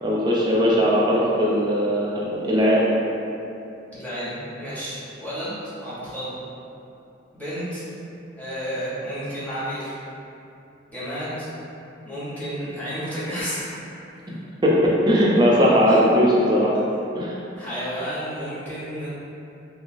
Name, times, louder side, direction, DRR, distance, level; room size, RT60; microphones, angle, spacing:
voice 1, 0.0-2.9 14.6-14.7 15.1-16.7 17.1-17.3, equal, 20° right, -5 dB, 0.4 m, -19 dB
voice 2, 3.9-6.4 7.3-7.8 8.4-10.0 10.9-11.5 12.0-13.7 15.9-16.0 17.5-19.1, equal, 10° left, -11 dB, 0.8 m, -31 dB
3.0 x 2.3 x 2.5 m, 2.7 s
head